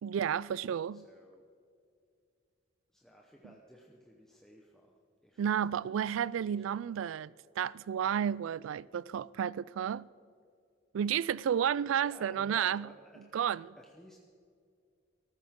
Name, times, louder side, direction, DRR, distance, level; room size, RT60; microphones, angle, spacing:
voice 1, 0.0-1.0 5.4-7.3 7.6-10.1 10.9-12.9 13.3-13.8, right 8 dB, 80° right, 0.3 m, -31 dB
voice 2, 0.9-1.5 2.9-7.0 12.0-13.3 13.8-14.2, equal, ahead, 0.9 m, -57 dB
18.5 x 14.5 x 3.7 m
head